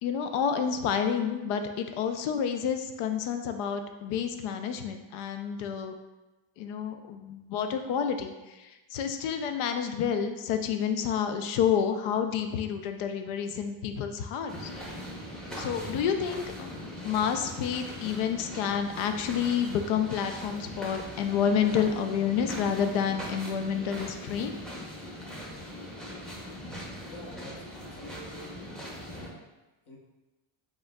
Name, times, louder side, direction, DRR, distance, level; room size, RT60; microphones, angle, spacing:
voice 1, 0.0-6.0 6.6-14.7 15.6-24.5, left 7 dB, 75° left, 6 dB, 0.5 m, -29 dB
sound 1, 14.5-29.3, equal, ahead, 0.6 m, -41 dB
voice 2, 27.1-28.5 29.1-29.4 29.9-30.0, left 1 dB, 50° left, -3 dB, 1.0 m, -47 dB
5.0 x 3.7 x 2.2 m, 1.1 s
cardioid pair, 130°, 49 cm